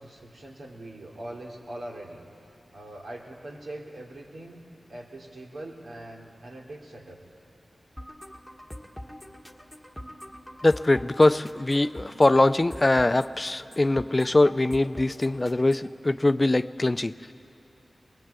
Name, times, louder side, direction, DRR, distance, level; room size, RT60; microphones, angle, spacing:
voice 1, 0.0-2.2 2.7-7.2, right 1 dB, 85° right, -2 dB, 2.9 m, -42 dB
sound 1, 8.0-16.0, equal, ahead, 1.5 m, -44 dB
voice 2, 10.6-17.1, left 2 dB, 30° left, 13 dB, 0.5 m, -22 dB
21.5 x 20.0 x 8.2 m, 2.9 s
wide cardioid pair, 60°, 0 cm